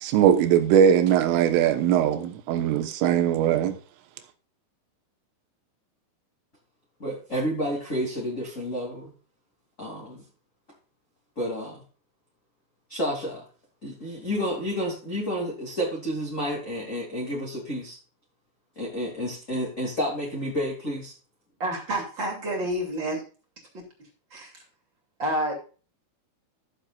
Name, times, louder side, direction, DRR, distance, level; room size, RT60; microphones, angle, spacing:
voice 1, 0.0-3.8, right 9 dB, 80° right, 3.7 m, -20 dB
voice 2, 7.0-9.1 9.8-10.2 11.4-11.8 12.9-13.4 13.8-18.0 18.8-21.1, equal, 25° left, 1.9 m, -30 dB
voice 3, 21.6-23.2 23.7-23.9 24.3-24.5 25.2-25.5, right 1 dB, 30° right, 2.4 m, -28 dB
15.0 x 7.3 x 2.4 m
omnidirectional pair, 5.7 m